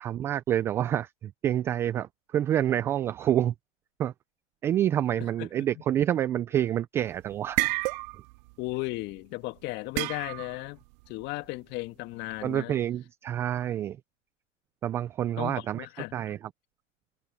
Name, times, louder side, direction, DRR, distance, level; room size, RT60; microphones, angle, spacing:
voice 1, 0.0-3.5 4.0-4.1 4.6-7.6 12.4-14.0 14.8-15.9 16.1-16.4, right 11 dB, 5° right, 0.4 m, -27 dB
sound 1, 7.0-8.9 10.0-10.7, right 27 dB, 35° right, 2.1 m, -30 dB
voice 2, 8.6-10.8 11.1-12.8 15.4-16.1, left 22 dB, 25° left, 1.9 m, -35 dB
hypercardioid pair, 130°, 39 cm